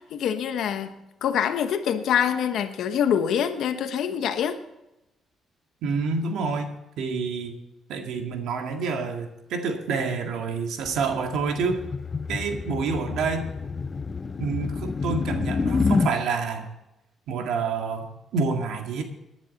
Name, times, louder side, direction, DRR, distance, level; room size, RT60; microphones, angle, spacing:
voice 1, 0.0-4.6, left 8 dB, 75° left, 1.1 m, -25 dB
voice 2, 5.8-6.7 7.0-7.5 7.9-11.8 12.3-13.5 14.4-16.7 17.3-19.0, right 4 dB, 80° right, 1.9 m, -28 dB
sound 1, 10.8-16.1, left 4 dB, 35° left, 0.7 m, -28 dB
18.5 x 10.5 x 4.2 m
cardioid pair, 90°, 0 cm